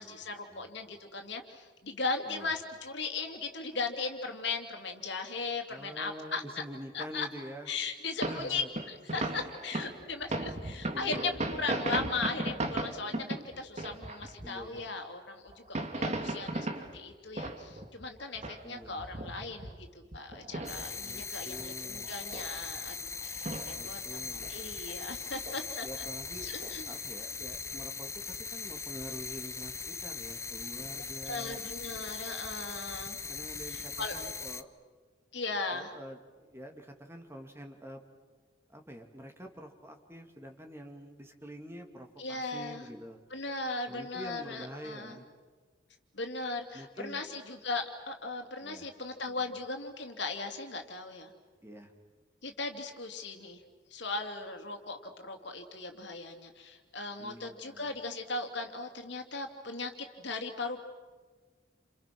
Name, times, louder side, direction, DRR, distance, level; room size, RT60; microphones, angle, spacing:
voice 1, 0.0-6.6 6.9-7.3 7.7-25.9 26.4-26.9 31.2-33.2 33.7-34.1 35.3-35.9 42.2-42.8 43.3-45.2 46.1-51.3 52.4-53.6 53.9-60.8, left 3 dB, 65° left, 5 dB, 2.9 m, -38 dB
voice 2, 5.7-7.7 8.2-8.7 9.1-9.5 10.9-11.4 14.4-14.9 18.6-19.0 21.0-22.1 23.8-24.8 25.8-26.5 26.9-31.6 33.3-34.7 35.7-38.0 38.7-43.2 43.9-45.3 46.7-47.2 48.6-48.9 51.6-51.9 57.2-58.0, equal, 15° right, 4 dB, 2.4 m, -46 dB
sound 1, 8.2-14.8 15.5-18.0 18.3-21.2 21.5-21.6 21.9-22.8 23.2-23.8 24.1-24.9 25.5-25.6 25.9-26.8 27.4-27.5, right 2 dB, 35° right, 1.9 m, -36 dB
sound 2, 20.7-34.6, left 5 dB, 15° left, 0.7 m, -40 dB
30.0 x 29.0 x 6.1 m, 1.4 s
head